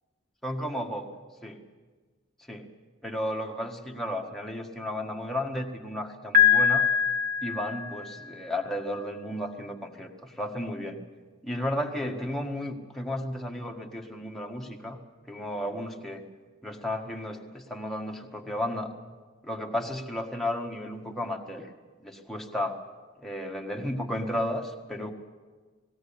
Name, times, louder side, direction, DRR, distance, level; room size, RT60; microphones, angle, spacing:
voice 1, 0.4-1.1 1.4-1.6 2.5-2.7 3.0-6.9 7.4-11.0 11.4-15.0 15.3-16.3 16.6-18.9 19.4-21.7 22.0-22.8 23.2-25.1, left 1 dB, ahead, 1 dB, 1.7 m, -33 dB
Piano, 6.3-8.3, left 8 dB, 45° right, 2.0 m, -23 dB
19.5 x 17.0 x 8.6 m, 1.4 s
head